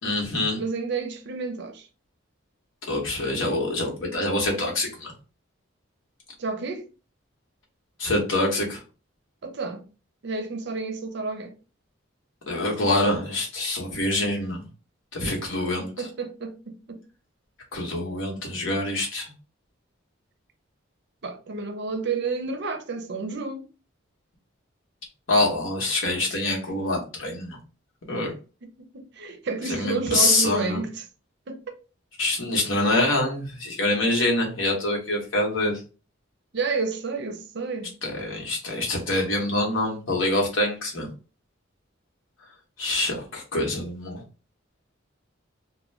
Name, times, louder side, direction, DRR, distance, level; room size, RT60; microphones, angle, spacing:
voice 1, 0.0-0.6 2.9-5.1 8.0-8.8 12.5-14.6 15.1-15.9 17.7-19.3 25.3-27.6 28.0-28.3 29.6-30.8 32.2-35.8 38.0-41.1 42.8-44.2, left 2 dB, 70° left, 1.0 m, -25 dB
voice 2, 0.6-1.9 6.4-6.9 9.4-9.8 10.2-11.5 16.0-17.0 21.2-23.7 28.6-28.7 28.9-31.0 31.5-31.8 36.5-37.9, right 4 dB, 55° right, 0.5 m, -30 dB
2.4 x 2.2 x 3.2 m
head